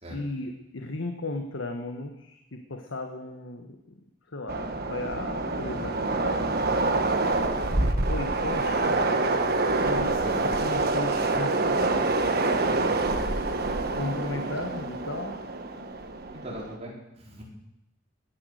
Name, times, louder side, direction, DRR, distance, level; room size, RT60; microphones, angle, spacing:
voice 1, 0.1-3.8 4.3-6.4 7.8-9.4 9.8-10.2 10.4-12.1 13.9-15.5, left 2 dB, 80° left, 5 dB, 1.3 m, -36 dB
Train, 4.5-16.7, right 2 dB, 50° right, 1.4 m, -26 dB
voice 2, 13.1-13.6 16.4-17.4, equal, 35° right, -3 dB, 4.4 m, -41 dB
19.5 x 10.5 x 6.5 m, 0.87 s
head